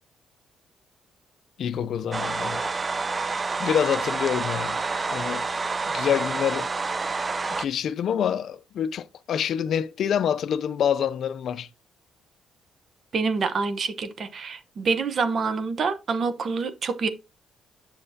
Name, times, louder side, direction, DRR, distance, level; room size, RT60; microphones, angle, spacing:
voice 1, 1.6-2.6 3.6-4.8 5.1-5.5 5.9-6.7 7.6-11.7, left 8 dB, 65° left, 0.4 m, -26 dB
sound 1, 2.1-7.7, right 4 dB, 30° right, 0.4 m, -28 dB
voice 2, 13.1-17.1, right 4 dB, 50° right, 0.9 m, -26 dB
7.7 x 6.4 x 2.7 m
cardioid pair, 90°, 0 cm